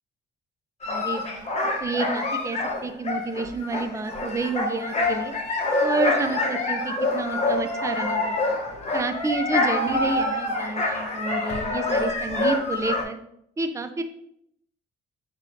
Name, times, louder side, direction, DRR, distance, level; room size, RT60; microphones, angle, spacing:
sound 1, 0.8-13.0, left 2 dB, 35° left, 0.8 m, -26 dB
voice 1, 0.9-1.5 1.8-5.4 5.8-8.6 8.9-13.2 13.6-14.0, right 3 dB, 15° right, 8 dB, 0.4 m, -29 dB
4.0 x 3.7 x 2.6 m, 0.72 s
cardioid pair, 90°, 20 cm